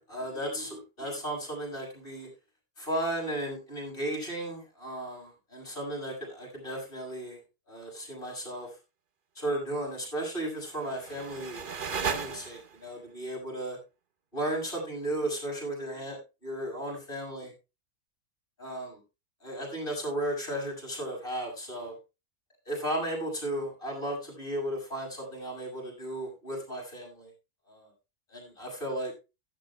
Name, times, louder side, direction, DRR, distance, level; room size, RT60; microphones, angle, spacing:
voice 1, 0.0-2.3 2.8-7.4 7.7-8.7 9.4-11.7 12.0-13.8 14.3-17.5 18.6-19.0 19.4-22.0 22.7-27.3 27.7-27.9 28.3-29.1, right 1 dB, 35° left, -1 dB, 6.9 m, -35 dB
sound 1, 10.5-12.9, right 6 dB, 40° right, 0.9 m, -36 dB
16.0 x 12.5 x 2.3 m, 0.28 s
omnidirectional pair, 1.7 m